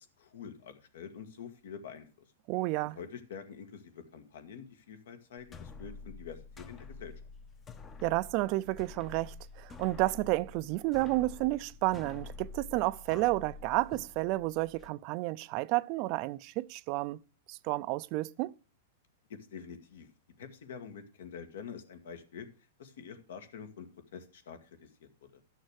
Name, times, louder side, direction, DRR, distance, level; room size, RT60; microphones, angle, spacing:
voice 1, 0.0-2.1 2.8-7.2 19.3-20.1 20.4-22.5 22.8-25.1, left 7 dB, 80° left, 1.9 m, -46 dB
voice 2, 2.5-3.0 8.0-17.2 17.5-18.5, right 20 dB, 40° right, 0.4 m, -31 dB
sound 1, 5.4-14.9, left 4 dB, 20° left, 0.7 m, -48 dB
11.5 x 6.5 x 6.4 m
supercardioid pair, 145°, 0 cm